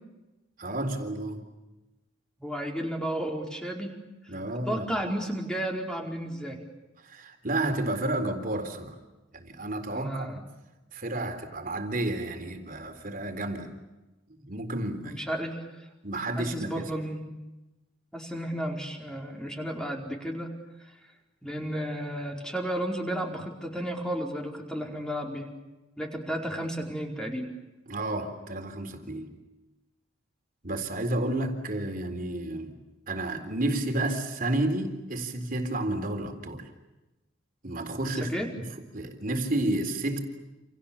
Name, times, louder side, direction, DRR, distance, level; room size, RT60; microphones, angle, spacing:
voice 1, 0.6-1.4 4.3-4.9 7.0-9.0 9.3-10.4 10.9-13.7 14.3-15.2 16.0-16.9 27.9-29.4 30.6-32.8 33.1-36.7 37.6-40.2, right 1 dB, 45° right, 3.8 m, -31 dB
voice 2, 2.4-3.9 4.7-6.6 9.9-10.4 15.0-15.6 16.4-17.2 18.1-20.5 21.4-25.5 26.0-27.5 38.3-38.5, right 1 dB, 5° left, 4.7 m, -33 dB
29.0 x 28.5 x 7.2 m
head